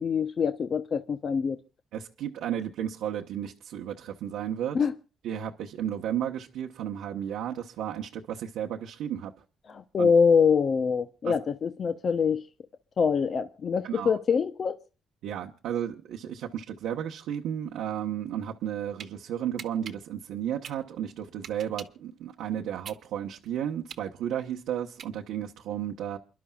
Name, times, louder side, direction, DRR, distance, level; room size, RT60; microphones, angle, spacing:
voice 1, 0.0-1.6 4.7-4.9 9.7-12.4 13.0-14.8, left 6 dB, 50° left, 0.8 m, -24 dB
voice 2, 1.9-4.8 5.2-9.3 10.0-10.1 11.2-11.3 13.8-14.2 15.2-26.2, right 10 dB, 85° right, 1.1 m, -33 dB
sound 1, 18.6-19.1 19.6-22.1 22.5-25.5, right 8 dB, 60° right, 1.3 m, -44 dB
29.0 x 11.5 x 2.4 m
cardioid pair, 90°, 0 cm